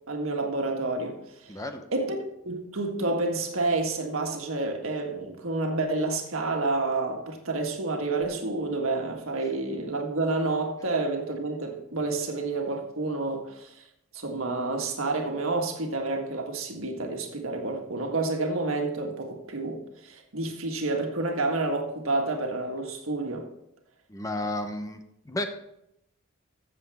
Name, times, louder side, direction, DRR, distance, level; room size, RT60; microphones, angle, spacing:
voice 1, 0.1-1.5 1.9-2.2 2.4-13.7 14.1-23.5, right 2 dB, 75° right, 1.6 m, -29 dB
voice 2, 1.5-1.9 24.1-25.0 25.2-25.4, left 1 dB, 15° left, 0.8 m, -32 dB
14.0 x 7.5 x 3.5 m
head